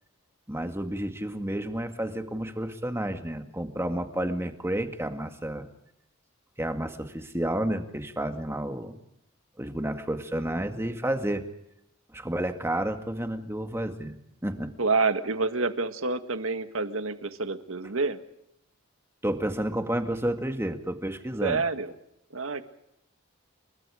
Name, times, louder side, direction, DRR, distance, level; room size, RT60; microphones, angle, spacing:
voice 1, 0.5-5.7 6.6-9.0 9.6-11.5 12.1-14.2 14.4-14.7 19.2-21.6, right 1 dB, 10° right, 6 dB, 1.9 m, -30 dB
voice 2, 14.8-18.2 21.4-21.9 22.3-22.6, right 3 dB, 75° right, 9 dB, 1.8 m, -28 dB
30.0 x 23.5 x 5.0 m, 0.79 s
head